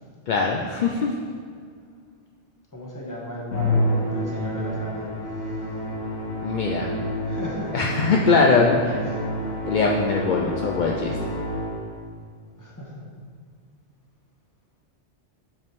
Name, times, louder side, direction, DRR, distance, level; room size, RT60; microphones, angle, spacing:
voice 1, 0.3-1.1 6.4-6.9 7.7-9.0 9.7-11.2, left 4 dB, 60° left, 0 dB, 0.5 m, -21 dB
voice 2, 2.7-5.7 6.8-7.7 9.0-9.5 12.6-12.9, equal, 15° left, -4 dB, 1.2 m, -36 dB
Musical instrument, 3.5-12.0, equal, 90° left, 1.5 m, -28 dB
5.7 x 5.1 x 4.6 m, 2.1 s
omnidirectional pair, 1.2 m